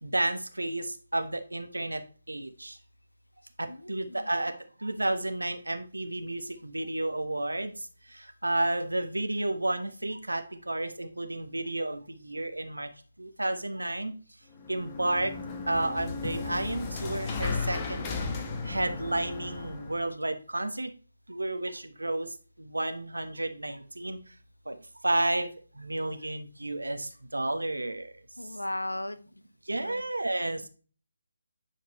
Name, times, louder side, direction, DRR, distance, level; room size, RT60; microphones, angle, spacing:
voice 1, 0.0-2.0 2.3-2.8 3.6-4.5 4.8-7.7 8.1-12.9 13.2-14.1 14.7-15.3 15.7-18.1 18.6-20.9 21.3-22.3 22.6-24.2 24.7-24.8 25.0-25.5 25.8-28.1 29.7-30.6, right 1 dB, 85° right, 8 dB, 1.3 m, -31 dB
voice 2, 3.7-4.0 28.4-29.2 29.8-30.0, left 1 dB, 85° left, 11 dB, 1.0 m, -36 dB
sound 1, 14.5-20.0, left 4 dB, 20° left, 1.1 m, -35 dB
10.5 x 4.4 x 3.1 m, 0.38 s
figure-of-eight pair, 150°, 0 cm